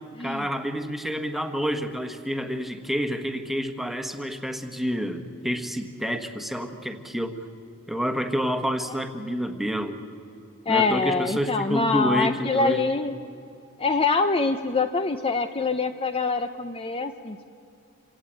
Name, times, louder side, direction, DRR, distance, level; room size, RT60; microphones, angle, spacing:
voice 1, 0.2-7.3 7.9-10.0 10.7-12.8, equal, ahead, 6 dB, 1.3 m, -28 dB
voice 2, 10.7-13.1 13.8-17.4, left 4 dB, 25° left, 8 dB, 0.6 m, -24 dB
27.0 x 17.0 x 9.0 m, 2.6 s
head